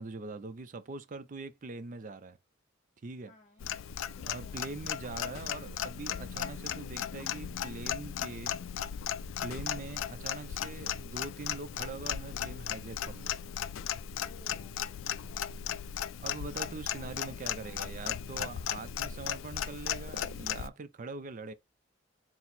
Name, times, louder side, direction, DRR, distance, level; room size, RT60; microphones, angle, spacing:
voice 1, 0.0-2.4 3.0-3.3 4.3-8.6 9.4-13.4 16.2-21.5, right 3 dB, 40° right, 0.4 m, -43 dB
voice 2, 3.3-3.7 4.1-4.7 14.2-14.8 15.1-15.6 16.9-18.1, left 2 dB, 35° left, 0.6 m, -57 dB
Clock, 3.6-20.7, left 9 dB, 75° left, 0.3 m, -36 dB
4.0 x 2.0 x 4.3 m
head